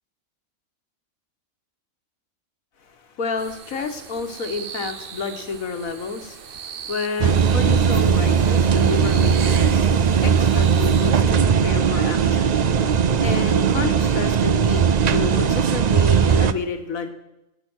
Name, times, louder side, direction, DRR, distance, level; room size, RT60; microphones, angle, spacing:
voice 1, 2.8-17.1, left 4 dB, 75° left, 7 dB, 1.8 m, -30 dB
sound 1, 3.4-11.1, right 8 dB, 50° right, 0.7 m, -39 dB
sound 2, 7.2-16.5, right 7 dB, 75° right, 0.3 m, -18 dB
18.5 x 8.9 x 6.3 m, 0.91 s
omnidirectional pair, 1.5 m